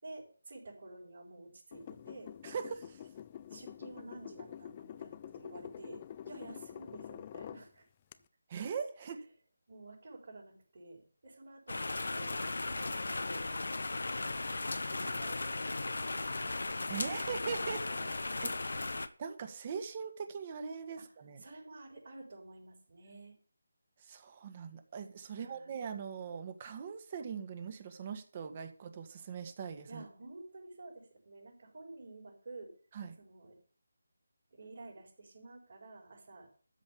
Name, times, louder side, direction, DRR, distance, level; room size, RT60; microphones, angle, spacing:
voice 1, 0.0-2.3 3.5-7.9 9.7-12.4 12.6-13.7 14.6-16.1 16.9-17.5 17.9-18.1 21.4-23.4 25.3-25.8 29.9-32.7 33.2-33.5 34.5-36.5, right 2 dB, 50° right, -5 dB, 5.2 m, -51 dB
sound 1, 1.7-7.6 8.1-8.2, left 10 dB, 25° left, 0.6 m, -47 dB
voice 2, 2.4-3.0 8.5-9.3 16.9-17.8 18.4-18.5 19.2-21.4 24.0-30.0 32.9-33.2, right 6 dB, 30° right, 8 dB, 1.9 m, -41 dB
sound 2, 11.7-19.1, left 2 dB, 65° left, 1.3 m, -36 dB
13.5 x 5.3 x 8.7 m, 0.40 s
figure-of-eight pair, 155°, 0 cm